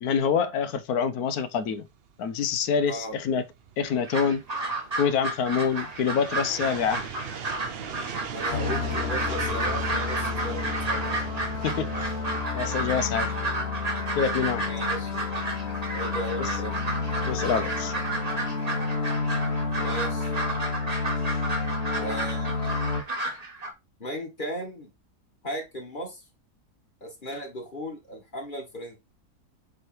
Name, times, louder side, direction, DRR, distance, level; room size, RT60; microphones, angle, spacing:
voice 1, 0.0-1.9 2.2-3.4 3.8-4.4 5.0-7.0 11.6-12.1 12.5-13.3 14.2-14.7 16.4-16.5 17.3-17.9, left 6 dB, 75° left, 1.2 m, -26 dB
sound 1, 1.5-12.5, right 7 dB, 55° right, 0.7 m, -40 dB
voice 2, 2.9-3.2 8.3-11.1 14.6-15.4 15.9-16.9 19.7-20.3 22.0-22.5 24.0-24.9 25.4-26.2 27.0-29.0, equal, 30° left, 1.8 m, -36 dB
sound 2, 3.9-23.7, right 2 dB, 25° right, 1.2 m, -32 dB
sound 3, 8.5-23.0, left 4 dB, 45° left, 1.2 m, -30 dB
7.7 x 3.2 x 4.5 m
omnidirectional pair, 1.7 m